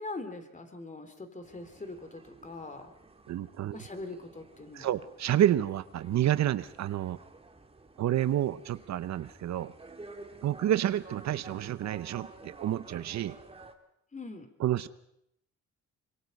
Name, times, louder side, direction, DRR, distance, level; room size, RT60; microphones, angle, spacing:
voice 1, 0.0-2.9 3.7-4.9 14.1-14.5, left 2 dB, 25° left, 8 dB, 3.1 m, -42 dB
sound 1, 1.4-13.7, right 3 dB, 20° right, 2.0 m, -52 dB
voice 2, 3.3-3.8 4.7-7.2 8.0-9.7 10.4-13.4 14.6-14.9, right 12 dB, 65° right, 15 dB, 0.8 m, -29 dB
25.0 x 22.5 x 5.4 m, 0.74 s
cardioid pair, 90°, 30 cm